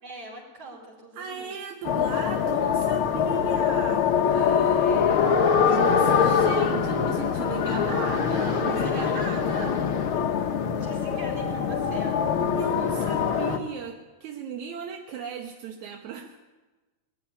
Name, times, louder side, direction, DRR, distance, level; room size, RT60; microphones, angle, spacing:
voice 1, 0.0-1.6 4.7-5.4 5.6-6.3 6.6-7.3 8.7-9.2 10.1-12.2, right 2 dB, 40° right, -1 dB, 5.4 m, -43 dB
voice 2, 1.2-5.0 5.6-9.9 10.6-10.8 12.6-16.4, right 6 dB, 65° right, 3 dB, 2.2 m, -37 dB
sound 1, 1.8-13.6, left 7 dB, 75° left, 1.2 m, -23 dB
21.0 x 14.0 x 9.9 m, 1.2 s
omnidirectional pair, 4.2 m